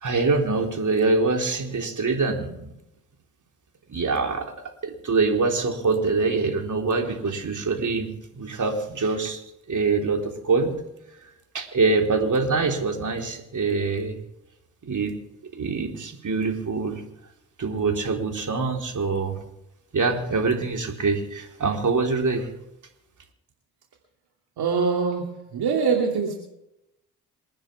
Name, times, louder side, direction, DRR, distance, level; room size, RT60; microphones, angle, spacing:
voice 1, 0.0-2.7 3.9-4.5 4.8-8.1 8.4-9.4 9.7-10.8 11.5-14.2 14.8-15.1 15.5-17.0 17.6-19.4 19.9-22.5, right 4 dB, 50° right, 3 dB, 4.0 m, -24 dB
voice 2, 24.6-26.3, right 5 dB, 70° right, 1 dB, 2.8 m, -24 dB
28.0 x 10.5 x 3.6 m, 0.88 s
hypercardioid pair, 45°, 40 cm